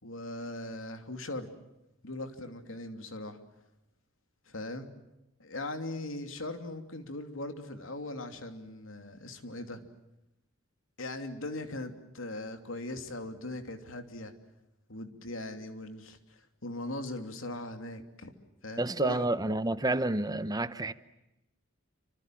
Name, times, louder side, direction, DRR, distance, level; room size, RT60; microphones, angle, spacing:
voice 1, 0.0-1.5 2.0-3.4 4.5-4.9 5.4-9.9 11.0-14.3 14.9-18.3 18.6-19.2, left 2 dB, 80° left, 2.9 m, -40 dB
voice 2, 18.8-20.9, right 2 dB, 20° right, 0.9 m, -29 dB
28.0 x 26.0 x 7.6 m
head